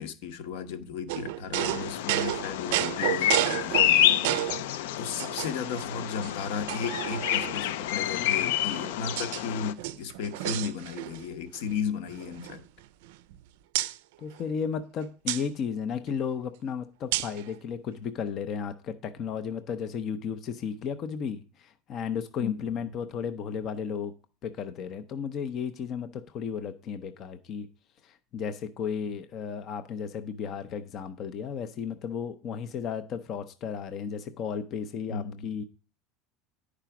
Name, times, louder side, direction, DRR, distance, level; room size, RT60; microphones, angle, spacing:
voice 1, 0.0-12.6 22.4-22.8 35.1-35.4, left 6 dB, 65° left, 1.1 m, -35 dB
sound 1, 1.1-4.7 5.2-5.8 6.2-6.3 6.7-7.7 8.5-9.4 9.7-11.3 11.5-11.8 12.1-13.4 13.7-14.0 15.3-15.4 17.1-17.4, right 16 dB, 75° right, 0.4 m, -31 dB
Bird vocalization bird call bird song, 1.6-9.7, left 12 dB, 85° left, 0.5 m, -28 dB
voice 2, 14.2-24.1 24.4-27.7 28.0-35.6, left 7 dB, 30° left, 0.5 m, -34 dB
10.0 x 4.9 x 5.8 m
cardioid pair, 175°, 0 cm